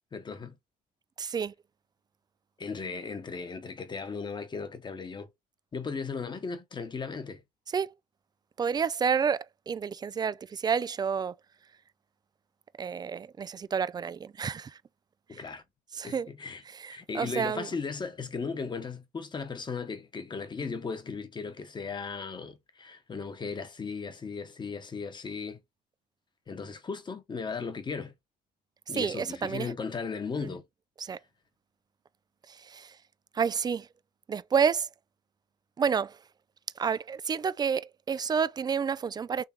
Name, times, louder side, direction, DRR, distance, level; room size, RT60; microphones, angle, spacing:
voice 1, 0.1-0.6 2.6-5.3 5.7-7.4 15.3-15.6 16.0-16.6 16.9-25.6 26.5-28.1 28.9-30.6, left 5 dB, 25° left, 1.1 m, -36 dB
voice 2, 1.2-1.5 7.7-7.9 8.6-11.3 12.8-14.8 15.3-15.4 15.9-16.3 16.8-17.7 28.9-29.7 30.4-30.5 31.0-31.2 32.5-33.0 33.3-33.9 34.3-34.9 35.8-36.2 36.8-39.4, right 6 dB, 25° right, 0.4 m, -29 dB
3.7 x 3.3 x 4.2 m
cardioid pair, 110°, 17 cm